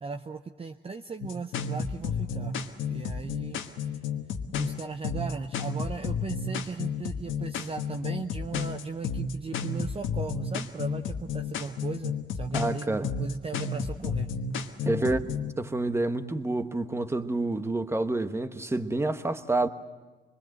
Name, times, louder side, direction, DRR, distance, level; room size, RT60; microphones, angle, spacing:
voice 1, 0.0-2.5 2.9-3.8 4.6-14.3, right 4 dB, 30° right, 0.8 m, -37 dB
sound 1, 1.2-15.5, left 5 dB, 80° left, 1.4 m, -32 dB
voice 2, 12.5-13.1 14.8-15.2 15.6-19.7, right 2 dB, 15° right, 1.2 m, -28 dB
25.5 x 21.0 x 7.7 m
cardioid pair, 90°, 20 cm